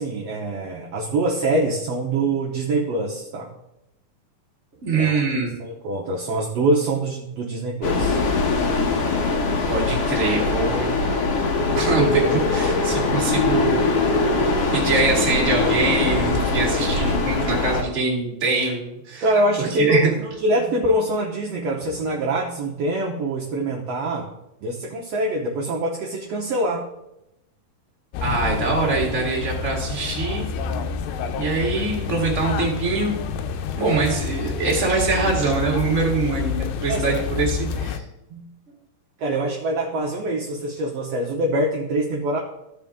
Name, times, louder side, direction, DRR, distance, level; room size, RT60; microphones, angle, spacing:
voice 1, 0.0-3.5 4.9-5.2 5.6-8.2 19.2-24.3 24.6-26.8 36.9-37.0 38.3-38.5 39.2-42.4, right 1 dB, 70° right, -1 dB, 1.5 m, -24 dB
voice 2, 4.8-5.5 9.7-10.9 11.7-13.8 14.7-19.3 19.6-20.1 28.2-30.5 31.3-33.2 33.7-38.0, right 4 dB, 25° right, -3 dB, 1.8 m, -23 dB
sound 1, 7.8-17.8, left 3 dB, 65° left, 1.6 m, -22 dB
sound 2, 28.1-38.0, left 6 dB, 85° left, 2.4 m, -28 dB
14.5 x 4.9 x 3.6 m, 0.89 s
omnidirectional pair, 4.1 m